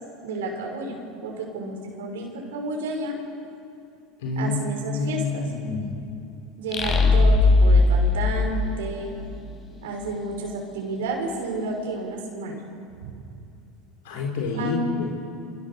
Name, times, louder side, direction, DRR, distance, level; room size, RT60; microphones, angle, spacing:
voice 1, 0.2-3.2 4.4-5.4 6.6-9.1 9.8-12.6 13.0-13.1 14.5-15.0, right 2 dB, 90° right, 1 dB, 6.2 m, -31 dB
voice 2, 4.2-4.6 4.9-6.0 14.0-14.8, left 4 dB, 80° left, 0 dB, 4.3 m, -28 dB
sound 1, 6.7-9.4, left 3 dB, 35° left, 5.1 m, -19 dB
28.0 x 26.5 x 7.1 m, 2.5 s
supercardioid pair, 110°, 0 cm